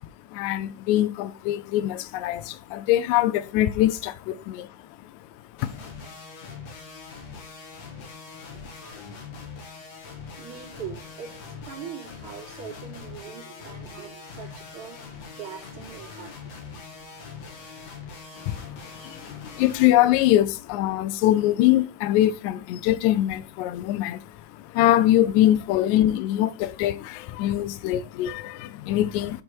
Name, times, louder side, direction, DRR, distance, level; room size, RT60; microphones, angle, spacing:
voice 1, 0.3-4.8 5.0-5.1 5.6-5.9 18.4-29.4, left 13 dB, 80° left, 1.8 m, -23 dB
sound 1, 5.6-19.9, left 5 dB, 60° left, 2.2 m, -42 dB
voice 2, 10.4-15.0 15.4-16.8 19.3-19.7 25.9-26.0, right 8 dB, 40° right, 3.3 m, -42 dB
8.0 x 3.5 x 4.5 m
omnidirectional pair, 3.8 m